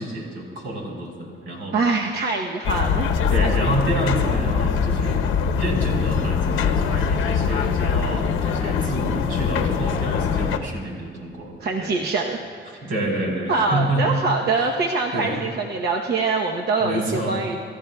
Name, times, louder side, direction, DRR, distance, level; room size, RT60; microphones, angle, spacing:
voice 1, 0.0-1.8 3.3-5.3 5.5-11.5 11.8-11.9 12.8-14.0 14.6-14.7 15.1-15.4 16.8-17.4, right 1 dB, 85° right, -1 dB, 4.3 m, -28 dB
voice 2, 1.7-3.2 11.6-12.4 12.7-12.9 13.5-17.6, right 3 dB, 55° right, 1 dB, 0.9 m, -24 dB
sound 1, 2.6-10.6, left 6 dB, 85° left, 0.9 m, -22 dB
27.0 x 13.5 x 2.3 m, 2.2 s
cardioid pair, 90°, 20 cm